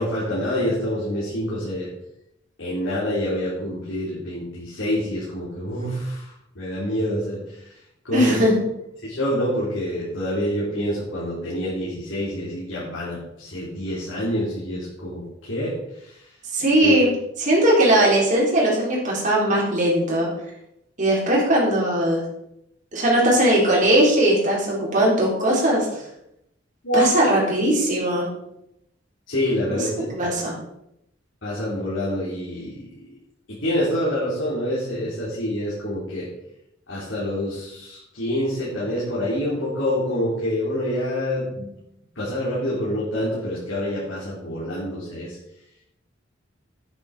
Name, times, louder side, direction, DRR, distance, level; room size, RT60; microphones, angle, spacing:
voice 1, 0.0-1.9 2.6-6.3 6.6-7.7 8.0-8.4 9.0-15.7 16.0-16.2 16.8-16.9 26.8-27.2 29.3-30.3 31.4-33.1 33.5-36.3 36.9-41.7 42.2-45.4, equal, 80° left, -8 dB, 3.8 m, -26 dB
voice 2, 8.1-8.6 16.5-17.1 17.4-20.3 21.0-22.2 22.9-26.0 26.9-28.3 29.7-30.5, right 1 dB, 40° right, -4 dB, 3.9 m, -19 dB
9.5 x 8.7 x 4.4 m, 0.81 s
head